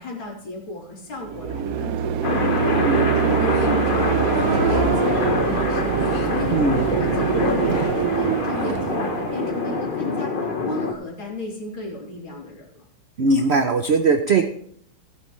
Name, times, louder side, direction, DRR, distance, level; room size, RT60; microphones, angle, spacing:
voice 1, 0.0-6.6 6.9-12.8, left 2 dB, 90° left, -1 dB, 3.9 m, -34 dB
sound 1, 1.2-10.2, right 9 dB, 70° right, 0.8 m, -24 dB
sound 2, 2.2-10.9, left 3 dB, 35° left, 0.9 m, -25 dB
sound 3, 2.7-3.1 3.4-3.8 4.1-4.7 4.9-5.3 6.0-6.3 6.8-7.0 7.6-8.1 8.5-8.9, left 6 dB, 60° left, 1.2 m, -42 dB
voice 2, 6.5-6.8 13.2-14.4, right 3 dB, 90° right, 7 dB, 0.5 m, -19 dB
16.0 x 9.5 x 3.2 m, 0.62 s
omnidirectional pair, 2.2 m